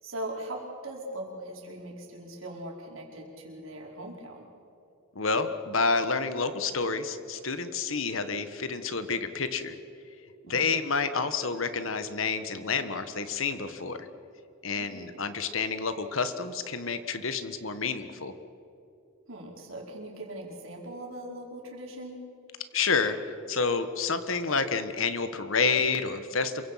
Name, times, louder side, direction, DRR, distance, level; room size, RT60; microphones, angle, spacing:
voice 1, 0.0-4.5 10.5-10.8 14.8-15.2 19.3-22.2, right 1 dB, 75° right, -1 dB, 4.9 m, -40 dB
voice 2, 5.1-9.7 10.4-14.1 14.6-18.3 22.7-26.7, left 4 dB, 70° left, 10 dB, 1.5 m, -29 dB
27.5 x 24.0 x 5.9 m, 2.8 s
head